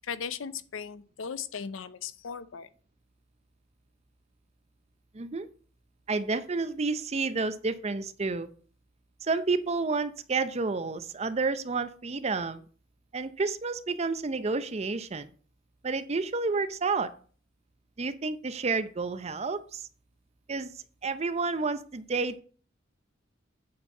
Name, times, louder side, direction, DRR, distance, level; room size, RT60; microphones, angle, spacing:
voice 1, 0.0-2.7, left 6 dB, 90° left, 15 dB, 0.6 m, -37 dB
voice 2, 5.1-5.5 6.1-8.5 9.2-12.6 13.1-15.3 15.8-17.1 18.0-19.8 20.5-20.7 21.0-22.4, right 4 dB, 35° right, 13 dB, 0.5 m, -30 dB
8.5 x 4.5 x 5.4 m, 0.43 s
head